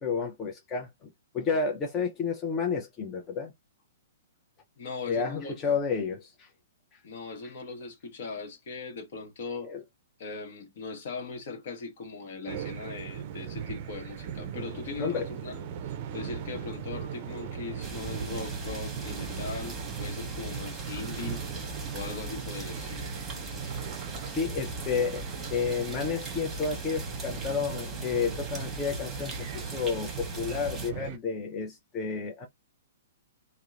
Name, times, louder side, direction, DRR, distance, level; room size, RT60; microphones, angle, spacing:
voice 1, 0.0-3.5 5.1-6.5 9.6-9.8 15.0-15.3 24.2-25.2 25.5-32.5, left 5 dB, 25° left, 0.6 m, -31 dB
voice 2, 4.8-5.6 7.0-9.7 10.2-15.7 16.1-21.6 21.9-23.1 23.7-23.8, left 4 dB, 55° left, 0.9 m, -39 dB
sound 1, 12.5-31.2, right 8 dB, 45° right, 0.4 m, -39 dB
sound 2, 17.8-30.9, right 1 dB, 15° right, 0.9 m, -39 dB
2.8 x 2.0 x 2.4 m
figure-of-eight pair, 115°, 0 cm